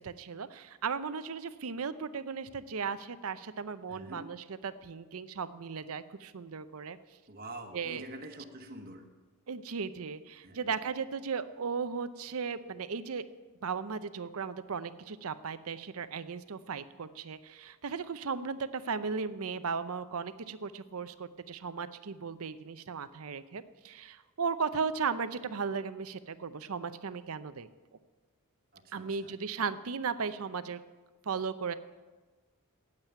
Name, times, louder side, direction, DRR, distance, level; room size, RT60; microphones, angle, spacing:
voice 1, 0.0-7.0 7.7-8.1 9.5-13.2 13.6-27.7 28.9-30.8 31.2-31.7, right 5 dB, 70° right, 13 dB, 0.6 m, -36 dB
voice 2, 3.9-4.3 7.3-9.1 10.4-10.8 28.7-29.3 29.6-29.7, right 1 dB, 40° right, 2 dB, 1.2 m, -46 dB
9.0 x 9.0 x 9.1 m, 1.3 s
head